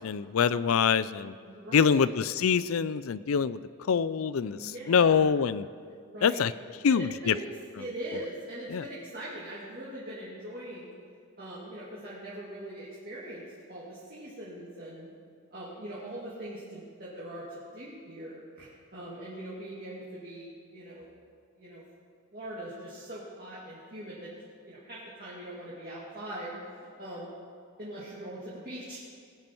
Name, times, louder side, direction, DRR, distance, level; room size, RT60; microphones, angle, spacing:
voice 1, 0.0-1.3 1.7-3.6 3.9-5.7 6.2-6.5 6.8-7.3 8.7-8.8, left 6 dB, 75° left, 16 dB, 0.4 m, -25 dB
voice 2, 1.4-2.1 4.4-5.2 6.0-6.4 6.9-7.5 7.7-10.9 11.4-13.4 13.7-15.1 15.5-21.1 21.6-21.8 22.3-24.3 24.6-26.5 26.8-27.4 27.8-29.0, right 1 dB, 40° right, -8 dB, 2.4 m, -41 dB
20.5 x 8.8 x 4.6 m, 2.2 s
head